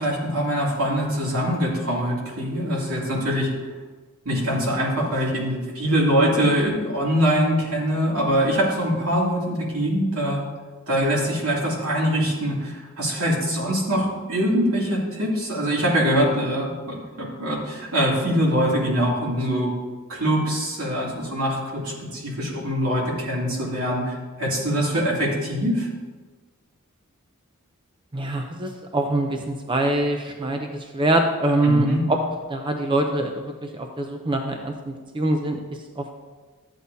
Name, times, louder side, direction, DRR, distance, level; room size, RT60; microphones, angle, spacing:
voice 1, 0.0-3.5 4.2-10.4 10.9-19.7 20.1-25.9 31.6-32.0, equal, 80° right, -4 dB, 2.6 m, -23 dB
voice 2, 28.1-32.2 32.5-35.6 36.0-36.1, right 1 dB, 25° right, 4 dB, 0.6 m, -24 dB
12.5 x 8.1 x 2.7 m, 1.3 s
head